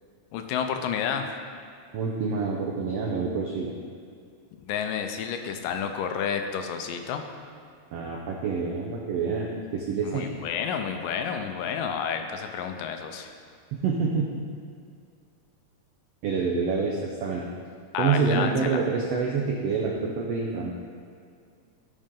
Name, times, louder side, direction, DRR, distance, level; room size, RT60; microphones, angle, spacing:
voice 1, 0.3-1.3 4.6-7.3 10.0-13.3 17.9-18.8, left 7 dB, 90° left, 6 dB, 2.3 m, -30 dB
voice 2, 1.9-3.7 7.9-10.3 13.7-14.3 16.2-17.4 18.0-20.7, right 5 dB, 90° right, -1 dB, 1.4 m, -27 dB
14.0 x 5.2 x 3.8 m, 2.2 s
omnidirectional pair, 3.7 m